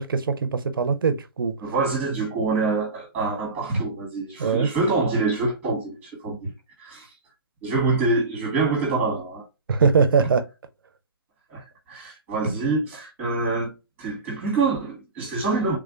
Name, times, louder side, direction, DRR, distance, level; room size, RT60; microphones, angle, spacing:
voice 1, 0.0-1.5 4.4-4.7 9.7-10.4, right 5 dB, 65° right, 0.6 m, -21 dB
voice 2, 1.6-6.5 6.8-7.1 7.6-9.4 11.5-13.7 14.0-15.8, right 3 dB, 10° right, 1.6 m, -25 dB
3.5 x 3.3 x 2.5 m
hypercardioid pair, 160°, 13 cm